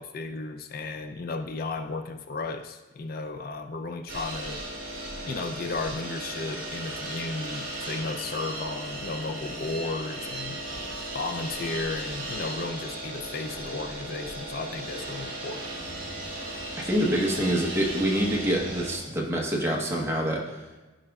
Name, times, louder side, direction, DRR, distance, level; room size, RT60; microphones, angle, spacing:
voice 1, 0.0-4.6 5.2-10.6 11.1-15.7, left 3 dB, 50° left, 6 dB, 0.4 m, -34 dB
sound 1, 4.1-19.0, right 1 dB, 50° right, 2.1 m, -36 dB
voice 2, 16.8-20.4, equal, 15° right, -2 dB, 0.9 m, -26 dB
12.0 x 5.0 x 2.3 m, 1.2 s
head